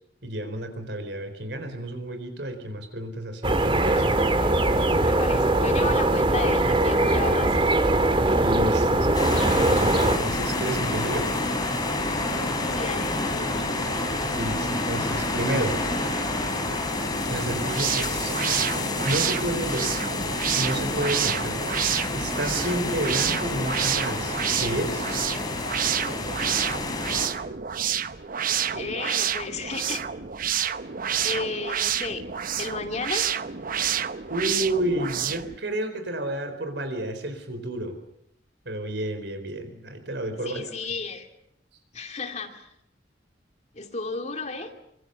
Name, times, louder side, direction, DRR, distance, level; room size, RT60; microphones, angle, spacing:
voice 1, 0.2-4.1 8.3-11.3 14.3-15.8 17.3-18.4 19.0-20.0 20.6-21.7 22.1-25.1 34.3-38.0 38.6-40.6, right 1 dB, 65° right, 8 dB, 4.4 m, -31 dB
sound 1, 3.4-10.2, right 2 dB, 30° right, 2.0 m, -21 dB
voice 2, 5.0-7.6 12.7-13.7 28.7-30.0 31.2-32.2 32.6-33.3 40.4-41.3 41.9-42.7 43.7-44.7, left 3 dB, 40° left, 5 dB, 2.7 m, -33 dB
sound 2, 9.1-27.3, left 2 dB, 25° left, 4.4 m, -28 dB
sound 3, 17.5-35.6, right 9 dB, 50° right, 0.8 m, -29 dB
25.5 x 22.5 x 7.0 m, 0.76 s
head